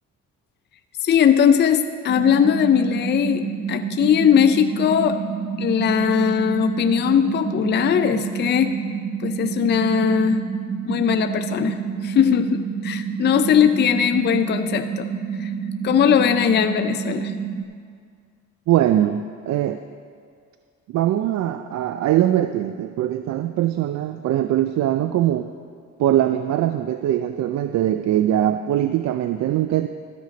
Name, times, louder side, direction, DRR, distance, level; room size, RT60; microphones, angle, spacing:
voice 1, 1.0-5.2 5.6-8.8 9.2-10.5 10.9-15.1 15.4-15.5 15.8-17.3, left 8 dB, 35° left, 8 dB, 0.4 m, -19 dB
sound 1, 2.1-17.6, right 6 dB, 35° right, 0.9 m, -29 dB
voice 2, 18.7-19.8 20.9-25.5 26.0-29.9, right 12 dB, 65° right, 9 dB, 0.4 m, -21 dB
12.5 x 6.6 x 5.1 m, 2.1 s
cardioid pair, 90°, 30 cm